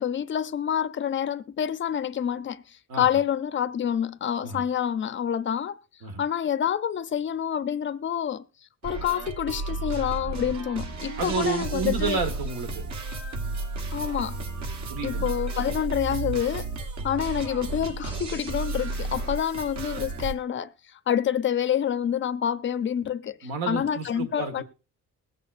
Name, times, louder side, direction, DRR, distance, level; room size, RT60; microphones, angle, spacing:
voice 1, 0.0-5.7 6.2-8.5 8.8-12.2 13.9-14.4 15.0-16.7 17.0-20.7 21.1-24.6, left 9 dB, 35° left, 0.5 m, -27 dB
sound 1, 8.8-20.3, right 3 dB, 55° right, 1.2 m, -33 dB
voice 2, 11.2-12.8 14.9-15.3 23.4-24.6, right 5 dB, 75° right, 1.6 m, -30 dB
21.0 x 8.4 x 2.5 m
cardioid pair, 150°, 35 cm